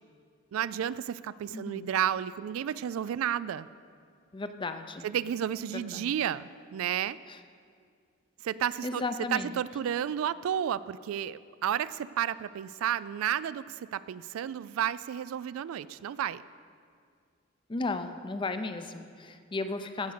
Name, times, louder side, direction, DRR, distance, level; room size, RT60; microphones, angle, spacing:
voice 1, 0.5-3.7 5.0-7.2 8.4-9.0 9.3-16.4, right 9 dB, 85° right, 16 dB, 0.3 m, -32 dB
voice 2, 1.5-1.9 4.3-5.1 5.7-6.1 7.3-7.4 8.8-9.6 17.7-20.1, left 3 dB, 25° left, 9 dB, 0.5 m, -35 dB
14.5 x 5.2 x 6.6 m, 2.2 s
head